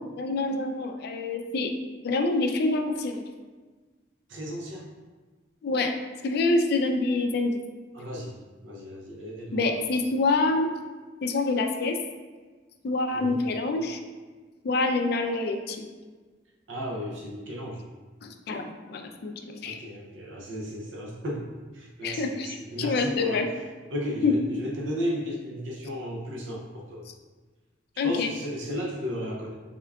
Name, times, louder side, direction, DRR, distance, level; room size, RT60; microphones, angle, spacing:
voice 1, 0.2-1.7 2.0-3.2 5.6-5.9 6.2-7.6 9.5-10.7 11.2-12.0 12.8-14.0 14.6-15.9 18.2-19.8 22.0-23.5 24.2-24.3 28.0-28.3, left 3 dB, 55° left, 4 dB, 0.3 m, -26 dB
voice 2, 4.3-4.9 7.9-8.4 8.6-9.8 10.1-10.2 13.1-13.4 16.7-17.8 19.6-23.5 23.9-27.1 28.0-29.6, equal, 80° right, -2 dB, 0.5 m, -34 dB
3.6 x 3.4 x 2.3 m, 1.4 s
head